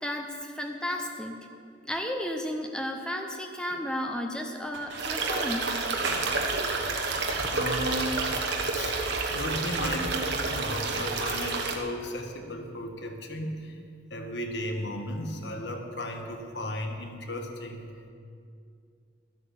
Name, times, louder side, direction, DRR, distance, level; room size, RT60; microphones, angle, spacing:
voice 1, 0.0-1.4 1.8-5.7, equal, 5° left, 3 dB, 0.7 m, -33 dB
sound 1, 4.7-5.3 5.7-7.8 9.4-10.4, right 2 dB, 85° right, 3.2 m, -42 dB
sound 2, 5.0-11.8, right 3 dB, 60° right, 1.2 m, -29 dB
voice 2, 7.5-9.0 9.3-13.8 14.1-17.9, left 1 dB, 60° left, 3 dB, 1.4 m, -35 dB
12.5 x 8.2 x 7.1 m, 2.3 s
head